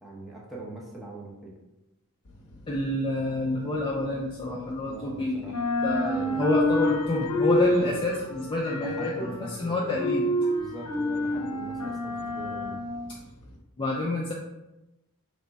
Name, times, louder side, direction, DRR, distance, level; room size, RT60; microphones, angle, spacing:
voice 1, 0.0-1.5 4.8-5.5 6.1-6.5 7.7-8.0 8.8-9.9 10.6-12.9, right 1 dB, ahead, -5 dB, 0.7 m, -41 dB
sound 1, 2.3-5.1 5.4-13.6, left 1 dB, 85° left, 0.6 m, -29 dB
voice 2, 2.7-10.3 13.8-14.3, left 1 dB, 25° left, -3 dB, 0.3 m, -28 dB
3.4 x 2.1 x 3.9 m, 0.97 s
head